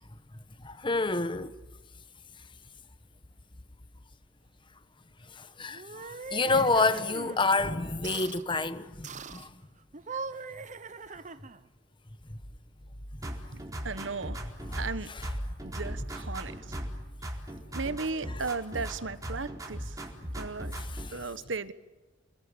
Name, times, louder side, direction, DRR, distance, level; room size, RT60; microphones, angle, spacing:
voice 1, 0.6-1.5 5.3-9.5 12.3-12.4 15.1-15.2 20.8-21.2, left 3 dB, 25° left, 1.2 m, -29 dB
sound 1, 5.7-7.4 8.0-8.4 9.0-9.5 9.9-11.7, right 4 dB, 40° right, 1.1 m, -41 dB
sound 2, 13.2-15.0 15.2-17.0 17.2-19.0 19.2-21.1, equal, 20° right, 4.0 m, -38 dB
voice 2, 13.5-14.4 14.8-15.1 15.6-16.5 17.7-20.0 20.4-20.7 21.1-21.7, right 4 dB, 75° right, 1.3 m, -36 dB
27.0 x 21.0 x 8.8 m
head